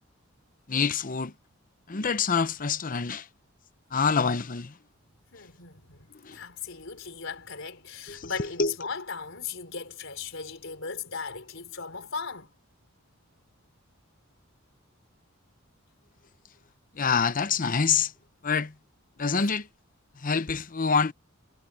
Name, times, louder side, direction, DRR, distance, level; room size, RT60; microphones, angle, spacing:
voice 1, 0.7-1.3 1.9-3.3 3.9-4.7 6.2-6.4 8.1-8.7 16.9-18.1 18.4-18.7 19.2-19.7 20.2-21.1, left 5 dB, 40° left, 0.8 m, -26 dB
voice 2, 5.3-12.5, left 5 dB, 65° left, 4.6 m, -38 dB
head